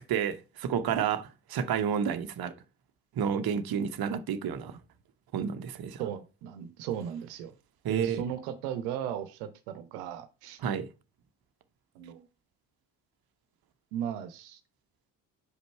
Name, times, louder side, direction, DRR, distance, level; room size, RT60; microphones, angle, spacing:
voice 1, 0.0-2.5 3.2-4.8 5.3-6.0 7.8-8.2 10.6-10.9, right 7 dB, 50° right, 1.0 m, -30 dB
voice 2, 6.0-7.5 7.9-10.6 11.9-12.3 13.9-14.6, right 9 dB, 85° right, 1.0 m, -36 dB
6.7 x 5.2 x 4.4 m
hypercardioid pair, 55°, 47 cm